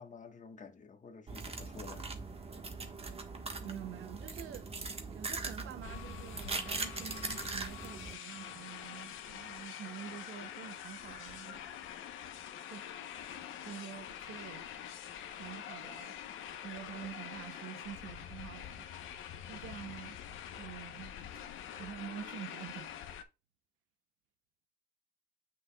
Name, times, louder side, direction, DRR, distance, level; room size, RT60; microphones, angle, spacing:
voice 1, 0.0-2.1, left 5 dB, 40° left, 1.3 m, -51 dB
sound 1, 1.3-8.1, right 3 dB, 30° right, 1.3 m, -41 dB
voice 2, 3.6-4.7 5.1-11.7 12.7-12.8 13.6-14.7 15.4-16.1 16.6-18.9 19.4-20.2 20.6-21.1 21.8-22.9, right 10 dB, 80° right, 0.8 m, -47 dB
sound 2, 5.8-23.2, left 9 dB, 80° left, 0.9 m, -46 dB
7.8 x 6.2 x 2.3 m
cardioid pair, 90°, 20 cm